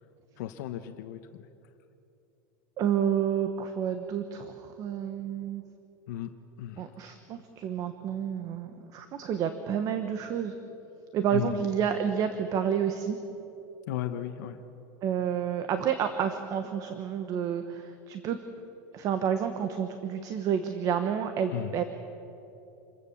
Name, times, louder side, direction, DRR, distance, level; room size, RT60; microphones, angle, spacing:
voice 1, 0.4-1.5 6.1-6.3 6.6-6.9 11.3-11.6 13.9-14.6 21.5-21.7, left 12 dB, 75° left, 7 dB, 1.1 m, -35 dB
voice 2, 2.8-5.6 6.8-10.6 11.1-13.2 15.0-18.4 18.9-21.8, right 8 dB, 35° right, 8 dB, 1.2 m, -30 dB
27.5 x 15.0 x 7.1 m, 2.9 s
supercardioid pair, 150°, 10 cm